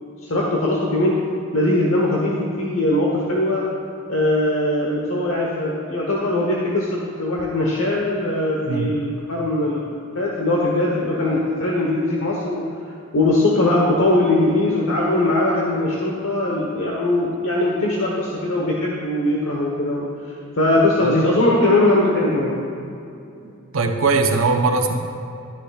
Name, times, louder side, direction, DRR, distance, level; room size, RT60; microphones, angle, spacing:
voice 1, 0.2-1.2 1.5-3.6 4.1-12.6 13.1-20.1 20.6-22.6, left 1 dB, 65° left, -3 dB, 1.1 m, -20 dB
voice 2, 23.4-24.9, right 3 dB, 70° right, 3 dB, 0.8 m, -20 dB
13.0 x 10.0 x 2.4 m, 2.6 s
head